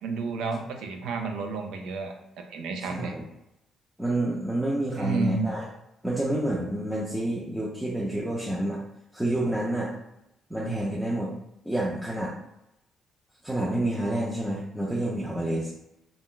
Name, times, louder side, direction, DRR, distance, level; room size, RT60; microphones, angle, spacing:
voice 1, 0.0-2.1 2.5-3.1 5.0-5.5, right 4 dB, 90° right, 4 dB, 0.4 m, -31 dB
voice 2, 2.8-3.2 4.0-5.6 6.0-8.8 9.1-9.9 10.5-11.3 11.7-12.3 13.4-15.7, right 1 dB, 5° right, -5 dB, 0.5 m, -28 dB
2.3 x 2.1 x 3.7 m, 0.86 s
cardioid pair, 90°, 0 cm